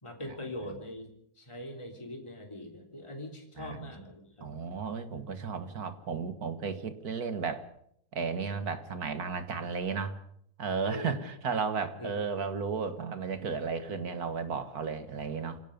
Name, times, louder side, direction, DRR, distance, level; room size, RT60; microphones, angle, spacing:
voice 1, 0.0-1.1 1.4-4.5 10.8-11.3 12.0-12.1, left 1 dB, 20° left, 2 dB, 3.5 m, -42 dB
voice 2, 3.6-3.9 4.4-7.7 8.1-10.2 10.6-15.6, right 5 dB, 70° right, 10 dB, 2.1 m, -34 dB
27.5 x 17.5 x 5.3 m, 0.70 s
omnidirectional pair, 1.7 m